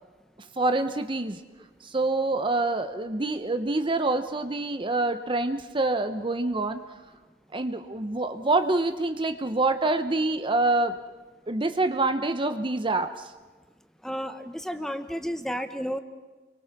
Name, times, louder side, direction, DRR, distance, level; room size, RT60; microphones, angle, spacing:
voice 1, 0.6-1.4 1.8-6.8 7.5-10.9 11.5-13.3, right 2 dB, 30° right, 9 dB, 0.8 m, -26 dB
voice 2, 14.0-16.0, equal, 5° left, 9 dB, 1.1 m, -32 dB
29.0 x 23.5 x 6.0 m, 1.3 s
head